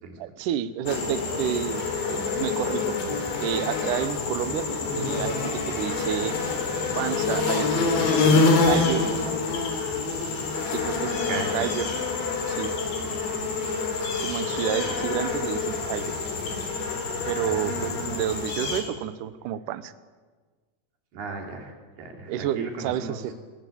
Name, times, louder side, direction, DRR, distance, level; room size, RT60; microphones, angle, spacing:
voice 1, 0.2-3.0 3.4-6.4 7.0-9.1 10.7-11.9 12.5-12.7 14.2-16.1 17.3-19.9 22.3-23.3, right 11 dB, 90° right, 13 dB, 1.8 m, -30 dB
sound 1, 0.9-18.8, left 4 dB, 85° left, 5.4 m, -26 dB
voice 2, 11.3-11.7 14.8-14.9 17.4-17.8 21.1-23.2, right 4 dB, 65° right, 2 dB, 4.8 m, -36 dB
21.0 x 18.5 x 8.4 m, 1.4 s
omnidirectional pair, 4.9 m